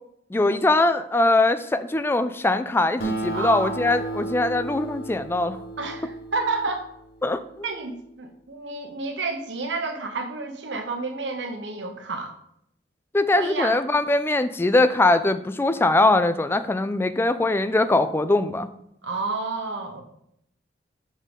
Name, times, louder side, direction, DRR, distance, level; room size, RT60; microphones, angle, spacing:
voice 1, 0.3-5.6 7.2-7.4 13.1-18.7, left 2 dB, 15° left, 11 dB, 0.3 m, -21 dB
Acoustic guitar, 3.0-7.8, right 2 dB, 55° left, 1.0 m, -33 dB
voice 2, 3.3-3.7 5.8-6.9 7.6-12.3 13.4-13.8 19.0-20.0, right 3 dB, 70° right, 4 dB, 1.0 m, -30 dB
6.3 x 3.7 x 5.3 m, 0.74 s
head